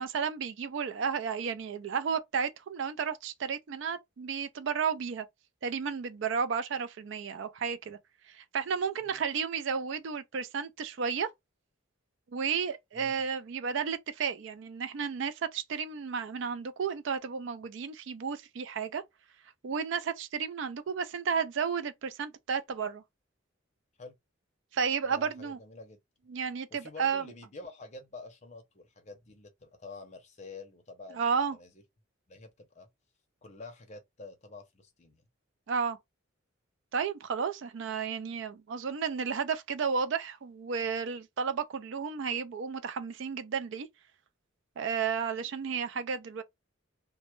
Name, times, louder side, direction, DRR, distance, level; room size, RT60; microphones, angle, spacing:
voice 1, 0.0-5.3 5.6-8.0 8.3-11.3 12.3-19.0 19.6-23.0 24.7-25.6 26.3-27.3 31.1-31.6 35.7-36.0 36.9-43.9 44.8-46.4, right 6 dB, 65° right, 0.3 m, -32 dB
voice 2, 25.1-26.0 26.7-31.8 32.3-32.9 33.4-35.2, left 3 dB, 35° left, 0.6 m, -48 dB
2.1 x 2.0 x 2.9 m
head